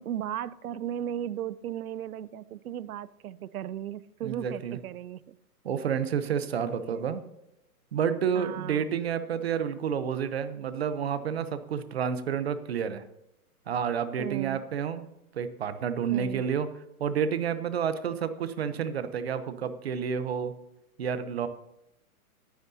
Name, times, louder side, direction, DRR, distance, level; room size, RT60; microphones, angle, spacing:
voice 1, 0.0-5.4 6.7-7.1 8.3-8.9 14.2-14.6 16.1-16.4, right 10 dB, 75° right, 18 dB, 0.6 m, -36 dB
voice 2, 4.2-4.8 5.6-7.2 7.9-13.0 13.7-15.0 15.3-16.7 17.0-20.5 21.0-21.5, right 7 dB, 45° right, 11 dB, 0.8 m, -30 dB
19.5 x 9.5 x 2.8 m, 0.84 s
hypercardioid pair, 175°, 44 cm